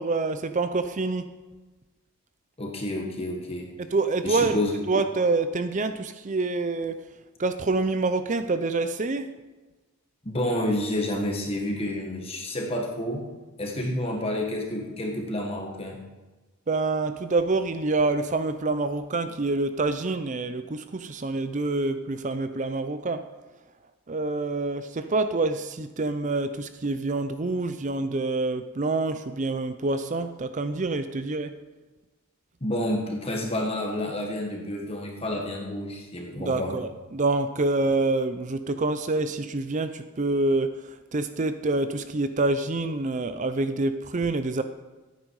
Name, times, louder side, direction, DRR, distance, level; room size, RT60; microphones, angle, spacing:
voice 1, 0.0-1.3 3.9-4.6 4.9-7.0 7.4-9.3 16.7-23.3 24.1-31.5 36.5-40.8 41.1-44.6, right 3 dB, 35° right, 10 dB, 0.5 m, -26 dB
voice 2, 2.6-3.7 4.2-4.7 10.2-13.2 13.6-16.0 32.6-36.8, left 1 dB, 25° left, 0 dB, 1.7 m, -29 dB
16.0 x 9.2 x 4.8 m, 1.2 s
head